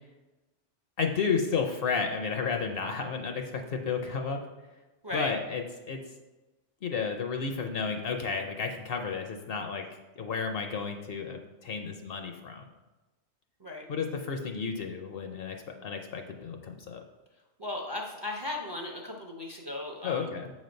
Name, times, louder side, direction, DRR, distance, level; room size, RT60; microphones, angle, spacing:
voice 1, 1.0-4.4 5.1-6.0 6.8-9.8 10.2-12.6 13.9-15.6 15.8-17.0 20.0-20.5, left 5 dB, 60° left, 4 dB, 0.7 m, -32 dB
voice 2, 17.6-20.4, left 2 dB, 30° right, -1 dB, 0.5 m, -36 dB
7.1 x 3.1 x 5.2 m, 1.1 s
omnidirectional pair, 1.2 m